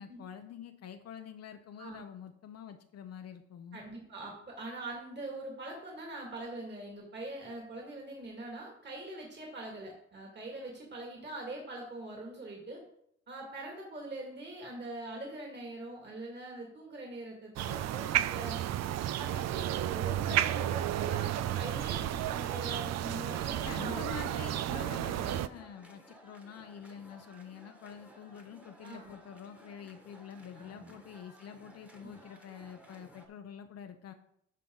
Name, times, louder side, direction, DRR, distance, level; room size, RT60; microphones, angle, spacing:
voice 1, 0.0-3.8 23.6-34.1, left 8 dB, 55° left, 6 dB, 0.7 m, -47 dB
voice 2, 3.7-12.8 13.3-18.6 19.2-23.9 28.8-29.1 30.5-31.0, right 2 dB, 35° right, -1 dB, 2.4 m, -43 dB
sound 1, 17.6-25.5, right 12 dB, 60° right, 0.4 m, -32 dB
sound 2, 19.5-33.3, equal, 5° right, 1.4 m, -57 dB
9.9 x 5.6 x 3.9 m, 0.73 s
cardioid pair, 90°, 30 cm